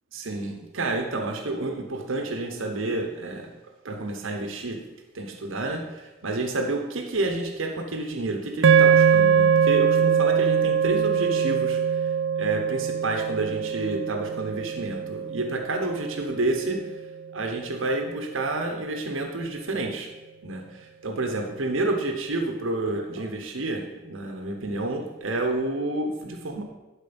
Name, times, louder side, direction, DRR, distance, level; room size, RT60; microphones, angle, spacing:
voice 1, 0.1-3.5 3.8-4.8 5.1-12.1 12.4-16.8 17.3-20.1 20.4-26.6, right 2 dB, 85° right, 3 dB, 1.0 m, -29 dB
sound 1, 8.6-17.0, right 7 dB, 70° right, 0.4 m, -22 dB
11.5 x 4.5 x 5.3 m, 1.1 s
head